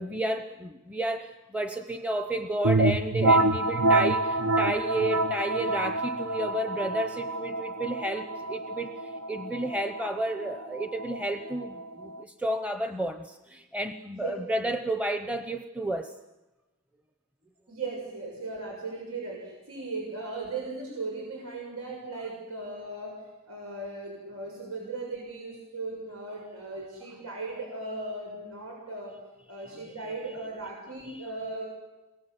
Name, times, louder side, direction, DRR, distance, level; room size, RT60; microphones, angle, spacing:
voice 1, 0.0-16.1 30.0-30.1 31.1-31.3, right 1 dB, 5° right, 7 dB, 0.8 m, -32 dB
sound 1, 2.6-12.2, right 2 dB, 70° right, 0.9 m, -27 dB
voice 2, 14.1-14.6 17.7-23.1 23.5-29.1 29.5-31.7, right 3 dB, 85° right, -1 dB, 7.0 m, -37 dB
28.5 x 22.0 x 8.1 m, 1.1 s
head